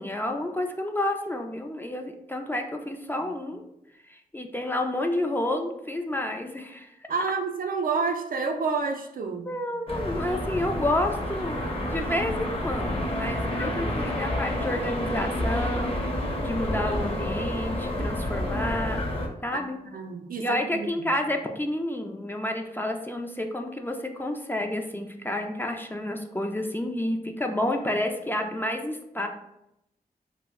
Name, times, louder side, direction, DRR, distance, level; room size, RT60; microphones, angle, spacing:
voice 1, 0.0-3.6 4.1-6.9 9.2-11.6 11.9-16.0 16.4-19.0 19.4-19.8 20.4-29.3, left 1 dB, 15° left, 3 dB, 0.3 m, -30 dB
voice 2, 7.1-9.5 19.5-21.1, right 4 dB, 60° right, 5 dB, 0.4 m, -29 dB
sound 1, 9.9-19.3, left 1 dB, 35° left, 0.7 m, -29 dB
2.4 x 2.1 x 3.5 m, 0.84 s
cardioid pair, 60°, 16 cm